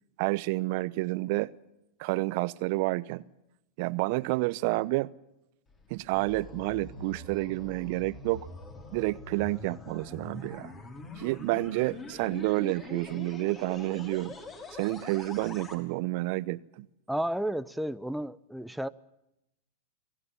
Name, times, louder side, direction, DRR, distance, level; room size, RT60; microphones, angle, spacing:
voice 1, 0.2-1.5 2.0-3.2 3.8-5.1 5.9-8.5 8.9-10.7 11.2-14.4 14.7-16.9, right 21 dB, 55° right, 18 dB, 0.8 m, -29 dB
sound 1, 5.7-15.8, left 3 dB, 30° left, 5.4 m, -44 dB
voice 2, 17.1-18.9, right 1 dB, ahead, 13 dB, 0.7 m, -32 dB
27.0 x 17.5 x 7.2 m, 0.88 s
hypercardioid pair, 95°, 0 cm